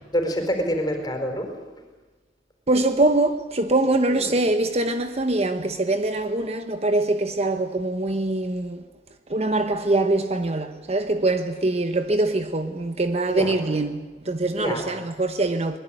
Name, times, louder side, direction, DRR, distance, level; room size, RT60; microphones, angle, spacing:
voice 1, 0.1-1.5 4.1-4.4 13.3-13.5 14.5-14.9, equal, 20° left, 4.7 m, -26 dB
voice 2, 2.7-8.9 9.3-15.8, right 2 dB, 35° right, 1.0 m, -23 dB
23.5 x 21.0 x 9.1 m
head